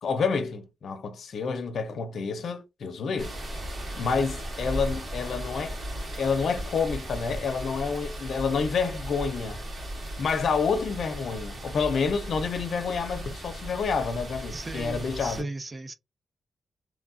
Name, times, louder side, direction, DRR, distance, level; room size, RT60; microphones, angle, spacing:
voice 1, 0.0-3.3 4.0-5.8 6.2-9.6 10.2-15.5, left 5 dB, 70° left, 0.6 m, -28 dB
sound 1, 3.2-15.4, right 1 dB, 50° right, 1.5 m, -37 dB
voice 2, 14.5-15.9, right 2 dB, 25° right, 0.5 m, -37 dB
3.1 x 2.3 x 2.4 m
cardioid pair, 100°, 0 cm